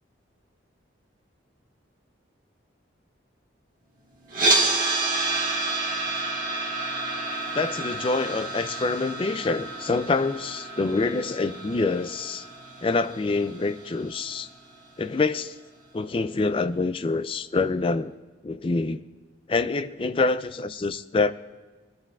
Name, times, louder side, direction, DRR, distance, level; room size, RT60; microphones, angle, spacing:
sound 1, 4.3-14.4, right 2 dB, 45° right, 1.6 m, -29 dB
voice 1, 7.5-12.5 12.8-14.5 15.0-15.5 15.9-18.1 18.4-19.0 19.5-21.3, left 3 dB, 30° left, 12 dB, 0.3 m, -26 dB
21.0 x 11.5 x 2.3 m, 1.3 s
head